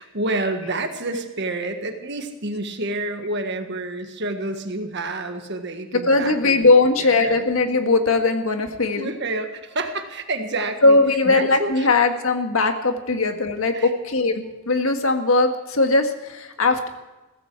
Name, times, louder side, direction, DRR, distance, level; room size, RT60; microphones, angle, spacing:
voice 1, 0.0-6.7 7.0-7.4 9.0-11.0 11.2-11.9 13.7-13.9, right 2 dB, 55° right, 6 dB, 1.6 m, -29 dB
voice 2, 5.9-9.1 10.8-16.9, left 3 dB, 80° left, 6 dB, 1.7 m, -19 dB
16.0 x 14.5 x 4.7 m, 1.1 s
head